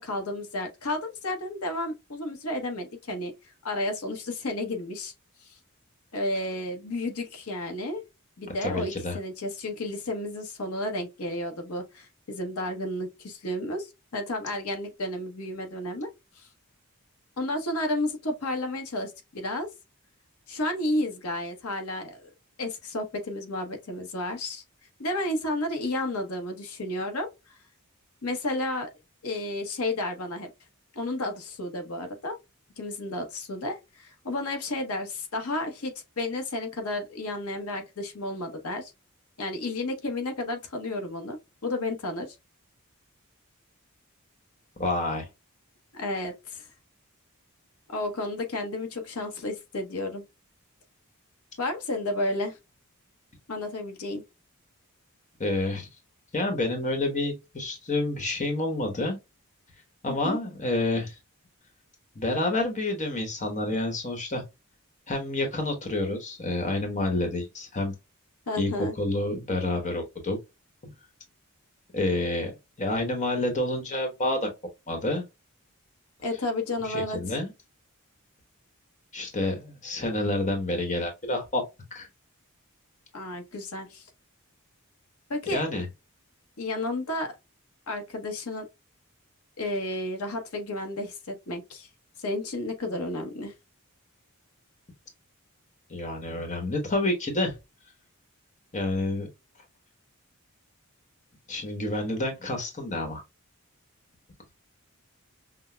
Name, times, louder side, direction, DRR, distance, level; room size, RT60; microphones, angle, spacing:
voice 1, 0.0-5.1 5.4-5.6 6.1-8.0 8.4-16.1 16.4-16.5 17.4-19.7 20.5-22.3 22.6-24.6 25.0-27.6 28.2-28.9 29.2-30.5 30.9-32.4 32.8-38.9 39.4-42.4 45.9-46.7 47.9-50.2 51.6-52.6 53.5-54.2 60.2-60.4 68.5-68.9 76.2-77.2 83.1-84.1 85.3-85.6 86.6-87.4 87.9-88.7 89.6-91.9 92.2-93.5, left 1 dB, 80° left, 0.9 m, -32 dB
voice 2, 8.6-9.2 44.8-45.3 55.4-55.9 56.3-59.2 60.0-61.2 62.1-64.4 65.1-67.9 68.5-70.4 70.8-70.9 71.9-72.5 72.8-74.5 74.9-75.3 76.8-77.5 79.1-81.6 81.9-82.1 85.5-85.8 95.9-97.6 98.7-99.3 101.5-103.2, left 2 dB, 35° left, 1.1 m, -28 dB
5.8 x 2.1 x 2.2 m
head